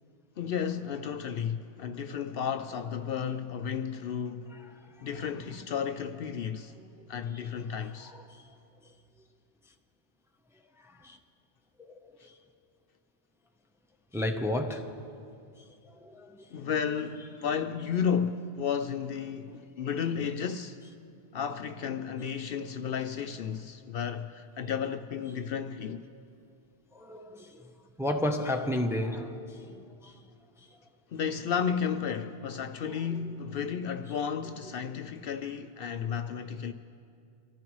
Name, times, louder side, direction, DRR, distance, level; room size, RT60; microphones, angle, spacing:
voice 1, 0.4-4.6 5.0-6.7 7.1-8.1 16.5-20.8 21.3-26.0 31.1-36.7, left 7 dB, 65° left, 0.7 m, -33 dB
voice 2, 11.9-12.3 14.1-15.0 16.0-16.4 26.9-27.6 28.0-30.1, left 1 dB, 5° right, 0.6 m, -32 dB
25.0 x 14.5 x 3.1 m
omnidirectional pair, 1.1 m